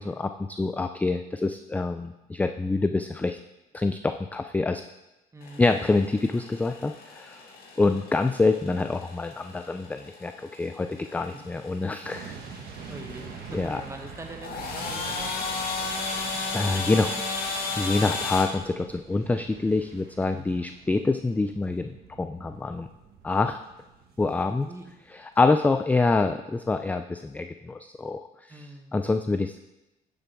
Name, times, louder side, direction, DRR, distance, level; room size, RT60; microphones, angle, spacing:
voice 1, 0.0-3.4 3.7-4.8 5.6-7.4 7.8-12.4 13.5-13.8 16.1-17.2 17.8-22.9 23.2-23.6 24.2-24.7 25.1-28.5 28.9-29.6, left 3 dB, 10° left, 8 dB, 0.3 m, -26 dB
voice 2, 5.3-5.7 7.8-8.0 12.9-15.9 20.3-20.6 24.7-24.9 28.5-29.1, right 2 dB, 15° right, 4 dB, 1.2 m, -44 dB
sound 1, 5.4-18.4, left 3 dB, 65° left, 2.1 m, -35 dB
sound 2, 12.0-25.2 25.5-25.6, right 5 dB, 70° right, 1.4 m, -45 dB
9.8 x 7.2 x 3.5 m, 0.97 s
cardioid pair, 110°, 17 cm